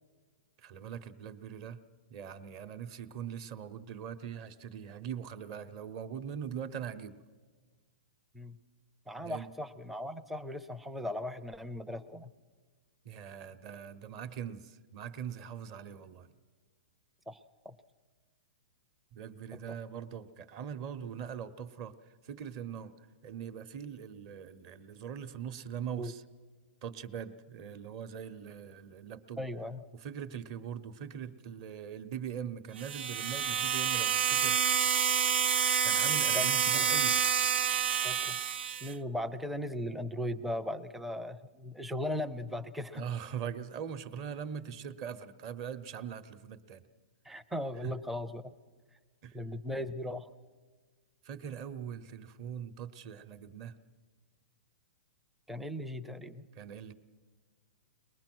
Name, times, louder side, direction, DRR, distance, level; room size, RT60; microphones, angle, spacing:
voice 1, 0.6-1.8 2.1-7.2 9.2-9.5 13.0-16.3 19.1-26.2 26.8-29.4 30.0-34.6 35.8-37.2 42.9-46.8 47.8-47.9 49.2-49.4 51.2-53.8 56.5-56.9, right 8 dB, 35° right, 10 dB, 1.0 m, -41 dB
voice 2, 9.1-12.3 17.3-17.8 19.5-19.8 26.0-26.1 29.4-29.9 36.3-36.5 36.7-36.9 38.0-38.4 38.8-43.1 47.2-48.5 49.3-50.3 55.5-56.4, left 1 dB, ahead, 9 dB, 0.5 m, -38 dB
sound 1, 32.8-38.9, right 8 dB, 75° right, 0.9 m, -28 dB
23.0 x 20.5 x 6.1 m, 1.5 s
hypercardioid pair, 160°, 6 cm